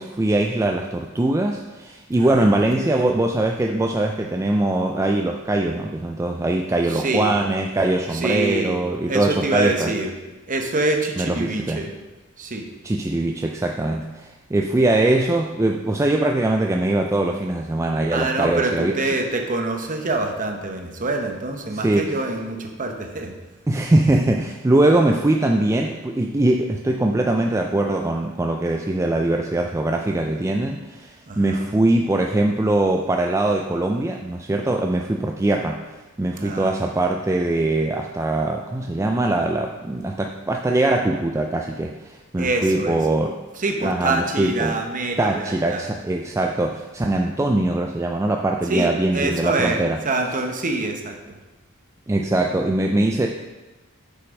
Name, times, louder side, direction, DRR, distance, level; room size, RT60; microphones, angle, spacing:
voice 1, 0.0-9.9 11.2-11.8 12.8-19.0 21.7-22.1 23.7-35.8 36.2-43.3 43.8-44.8 45.2-50.0 52.1-53.3, right 2 dB, 15° right, 2 dB, 0.3 m, -22 dB
voice 2, 2.2-3.2 6.9-7.3 8.1-8.8 9.1-10.1 10.5-11.9 12.4-12.7 18.1-23.3 31.3-31.6 36.4-36.8 42.4-43.0 43.6-45.8 48.7-51.2, right 2 dB, 40° right, 4 dB, 0.9 m, -25 dB
6.6 x 5.8 x 5.1 m, 1.1 s
head